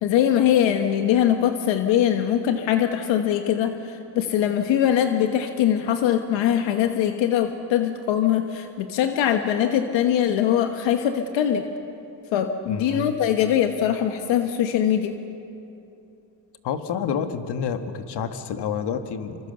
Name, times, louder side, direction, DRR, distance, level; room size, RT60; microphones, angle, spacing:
voice 1, 0.0-11.6 12.3-15.1, left 10 dB, 85° left, 6 dB, 1.4 m, -22 dB
voice 2, 12.7-13.1 16.6-19.4, left 7 dB, 65° left, 8 dB, 1.7 m, -28 dB
26.0 x 24.5 x 6.8 m, 2.8 s
cardioid pair, 105°, 44 cm